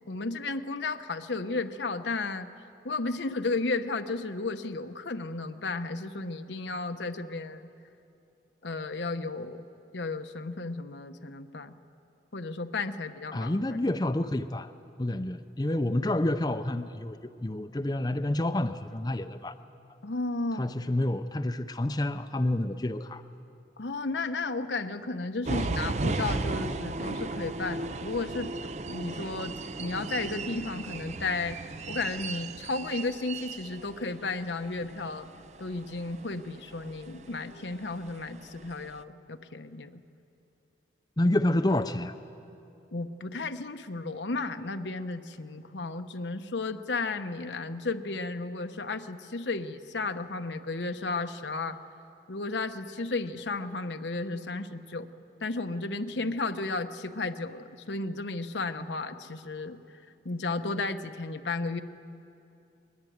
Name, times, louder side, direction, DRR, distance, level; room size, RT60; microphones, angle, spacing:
voice 1, 0.1-2.5 2.8-7.7 8.6-9.6 9.9-11.8 12.3-13.6 20.0-20.7 23.8-35.3 35.6-40.0 42.9-51.8 52.3-55.1 55.4-59.8 60.2-61.8, left 3 dB, 85° left, 7 dB, 1.0 m, -33 dB
voice 2, 13.3-14.7 15.0-19.5 20.6-23.2 41.2-42.1, left 1 dB, 20° left, 9 dB, 0.5 m, -28 dB
sound 1, 25.5-39.0, right 3 dB, 40° right, 0.5 m, -36 dB
22.0 x 21.0 x 9.4 m, 2.7 s
head